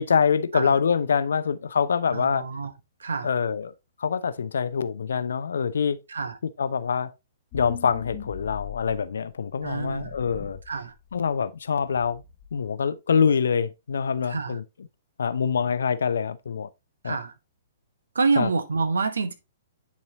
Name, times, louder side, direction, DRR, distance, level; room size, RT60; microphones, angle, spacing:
voice 1, 0.0-2.4 3.2-3.7 4.0-6.0 6.6-7.1 7.5-10.6 11.1-12.2 12.5-14.6 15.2-16.7 17.0-17.2 18.4-18.5, left 6 dB, 65° left, 0.5 m, -25 dB
voice 2, 2.1-2.7 3.0-3.3 6.1-6.4 9.6-10.2 10.7-10.9 14.3-14.6 17.0-17.3 18.1-19.3, right 4 dB, 70° right, 1.0 m, -27 dB
sound 1, 7.5-9.1 9.7-10.7 11.1-11.2 11.7-12.5, left 8 dB, 35° left, 1.3 m, -40 dB
9.5 x 4.2 x 2.8 m
figure-of-eight pair, 115°, 0 cm